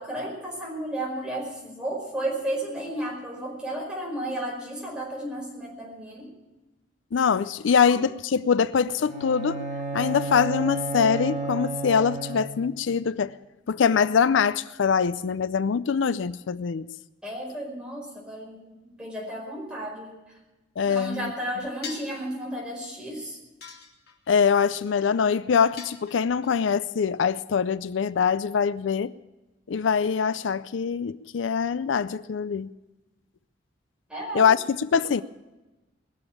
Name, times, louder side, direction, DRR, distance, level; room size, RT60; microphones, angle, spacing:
voice 1, 0.0-6.4 7.9-8.0 17.2-20.2 20.8-23.4 34.1-34.4 35.0-35.2, right 1 dB, 5° right, 5.1 m, -33 dB
voice 2, 7.1-9.6 9.9-13.3 13.7-16.9 20.8-21.3 24.3-29.1 29.7-32.7 34.3-35.2, left 6 dB, 80° left, 0.4 m, -23 dB
Bowed string instrument, 9.0-12.7, right 3 dB, 40° right, 6.6 m, -32 dB
sound 1, 21.8-22.2 23.6-24.3 25.8-26.5, left 6 dB, 55° left, 2.7 m, -41 dB
21.0 x 7.2 x 8.5 m
head